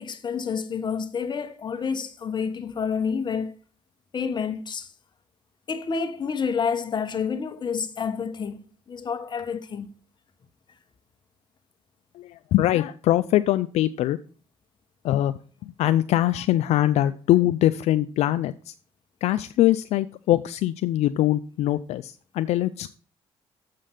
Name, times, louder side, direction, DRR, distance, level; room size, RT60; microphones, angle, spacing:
voice 1, 0.0-3.5 4.1-4.9 5.7-9.9, left 6 dB, 40° left, 1.1 m, -29 dB
voice 2, 12.1-14.2 15.0-15.3 15.6-18.7 19.2-22.9, left 14 dB, 70° left, 0.4 m, -22 dB
7.4 x 5.1 x 5.7 m
supercardioid pair, 75°, 11 cm